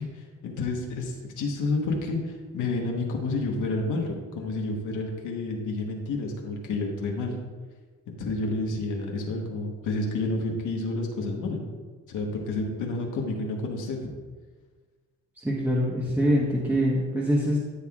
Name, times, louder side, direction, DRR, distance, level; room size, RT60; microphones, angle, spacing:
voice 1, 0.0-7.4 8.1-11.6 12.1-14.1, left 2 dB, 80° left, 0 dB, 1.3 m, -30 dB
voice 2, 15.4-17.6, equal, 5° right, -5 dB, 1.2 m, -24 dB
13.0 x 5.6 x 2.4 m, 1.4 s
cardioid pair, 90°, 30 cm